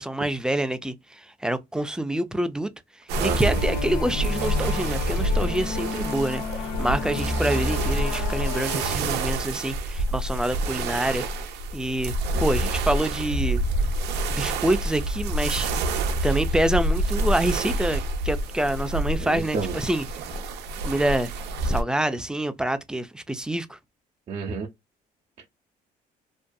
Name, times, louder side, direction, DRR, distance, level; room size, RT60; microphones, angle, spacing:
voice 1, 0.0-2.7 3.2-11.2 11.7-12.1 12.4-13.6 14.2-15.7 16.2-20.0 20.8-21.3 21.6-23.8, right 1 dB, 5° right, 0.3 m, -26 dB
sound 1, 3.1-21.8, right 1 dB, 80° right, 0.6 m, -27 dB
sound 2, 3.2-9.0, left 3 dB, 75° left, 0.6 m, -31 dB
voice 2, 3.2-3.6 19.2-19.7 24.3-24.7, right 4 dB, 40° right, 0.6 m, -30 dB
2.6 x 2.4 x 2.2 m
cardioid pair, 110°, 17 cm